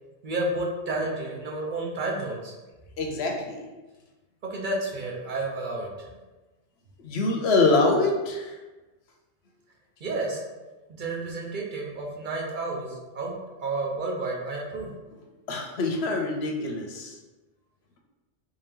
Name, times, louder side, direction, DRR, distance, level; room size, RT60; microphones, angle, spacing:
voice 1, 0.2-2.5 4.4-6.1 10.0-10.4 10.9-13.3 13.6-14.9, right 2 dB, 50° right, -1 dB, 0.7 m, -31 dB
voice 2, 3.0-3.7 7.0-8.6 15.5-17.2, left 3 dB, 65° left, 2 dB, 0.8 m, -25 dB
3.5 x 2.8 x 3.6 m, 1.2 s
omnidirectional pair, 1.2 m